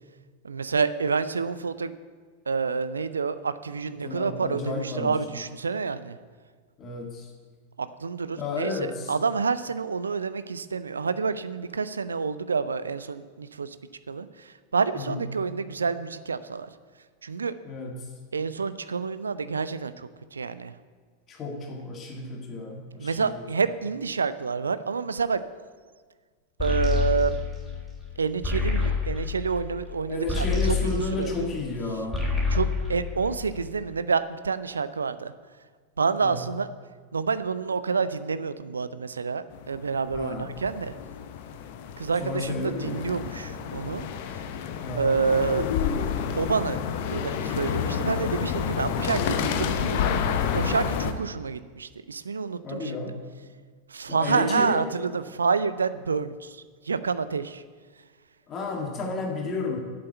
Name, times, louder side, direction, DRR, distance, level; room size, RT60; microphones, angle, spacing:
voice 1, 0.4-1.9 2.5-6.2 7.8-13.8 14.1-16.7 17.2-17.5 18.3-20.7 23.0-25.4 26.6-27.3 28.2-31.4 32.5-35.3 36.0-36.7 37.1-40.9 42.0-44.1 45.0-45.7 46.4-46.8 47.1-50.1 50.5-53.0 53.9-57.6, right 5 dB, 75° right, 14 dB, 0.5 m, -28 dB
voice 2, 4.0-5.2 6.8-7.3 8.4-9.1 14.9-15.2 17.6-18.1 21.3-23.3 30.1-32.3 36.2-36.4 40.1-40.5 42.2-43.0 44.8-45.2 52.6-53.2 54.1-54.9 58.5-59.8, left 3 dB, 30° left, 1 dB, 1.8 m, -32 dB
sound 1, 26.6-31.8 32.0-33.8, left 4 dB, 10° left, 3.6 m, -28 dB
sound 2, 39.5-51.1, left 7 dB, 50° left, 0.8 m, -29 dB
8.0 x 7.7 x 8.8 m, 1.5 s
figure-of-eight pair, 90°, 0 cm